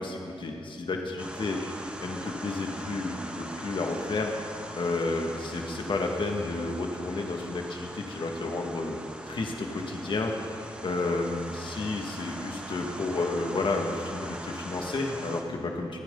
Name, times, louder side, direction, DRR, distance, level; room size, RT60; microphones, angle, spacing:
voice 1, 0.0-1.6 2.0-4.3 4.7-9.0 9.3-10.3 10.8-16.0, left 3 dB, 55° left, 2 dB, 2.2 m, -31 dB
sound 1, 1.2-15.4, right 1 dB, 10° right, 2.0 m, -41 dB
28.5 x 9.9 x 4.1 m, 2.6 s
cardioid pair, 60°, 10 cm